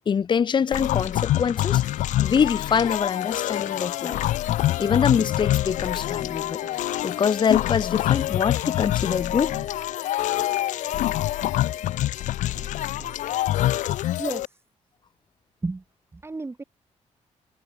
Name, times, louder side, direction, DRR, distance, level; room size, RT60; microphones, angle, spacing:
voice 1, 0.0-1.8 2.2-4.3 4.8-6.6 7.0-9.5, left 7 dB, 40° left, 0.7 m, -24 dB
sound 1, 0.7-14.4, left 14 dB, 90° left, 0.6 m, -26 dB
sound 2, 2.2-2.7 3.7-4.2 5.2-5.6 6.6-7.5 9.1-10.0 11.0-11.5 12.5-13.5, right 7 dB, 45° right, 7.6 m, -50 dB
sound 3, 5.3-12.0, left 9 dB, 65° left, 5.2 m, -41 dB
voice 2, 14.2-14.6 15.6-15.8 16.1-16.6, right 3 dB, 20° right, 2.6 m, -32 dB
cardioid pair, 115°, 12 cm